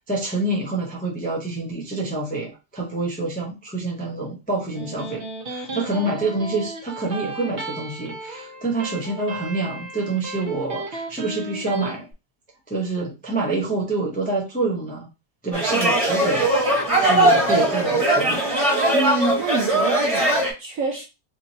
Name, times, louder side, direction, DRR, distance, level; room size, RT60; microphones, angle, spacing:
voice 1, 0.1-12.1 12.7-15.1 15.4-16.5 17.0-18.4, right 3 dB, 10° left, 0.5 m, -27 dB
Electric guitar, 4.5-11.9, right 2 dB, 45° right, 0.9 m, -35 dB
sound 1, 15.5-20.5, right 1 dB, 20° right, 1.2 m, -20 dB
voice 2, 18.9-21.0, right 3 dB, 65° right, 0.9 m, -27 dB
3.6 x 2.9 x 2.8 m
omnidirectional pair, 1.9 m